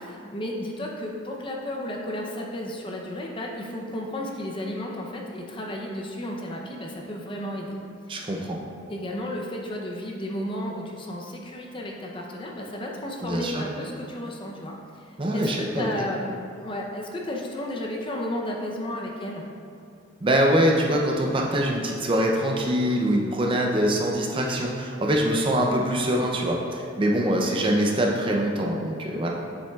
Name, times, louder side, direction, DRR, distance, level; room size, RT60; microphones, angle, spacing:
voice 1, 0.0-7.8 8.1-8.3 8.9-19.4, left 1 dB, 25° left, -1 dB, 0.6 m, -33 dB
voice 2, 8.1-8.6 13.2-13.6 15.2-15.9 20.2-29.3, equal, 25° right, 0 dB, 0.5 m, -24 dB
7.4 x 7.0 x 2.3 m, 2.4 s
head